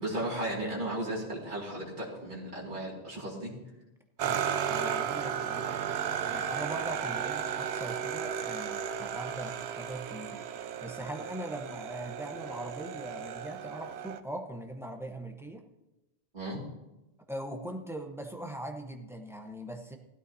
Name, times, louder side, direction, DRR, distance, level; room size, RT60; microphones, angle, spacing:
voice 1, 0.0-3.5 16.3-16.6, right 1 dB, 50° right, -5 dB, 2.5 m, -35 dB
voice 2, 4.2-15.7 17.3-20.0, right 1 dB, 5° right, 3 dB, 0.9 m, -41 dB
sound 1, 4.2-14.2, right 8 dB, 75° right, 0.8 m, -34 dB
16.0 x 12.5 x 2.8 m, 0.99 s
omnidirectional pair, 1.1 m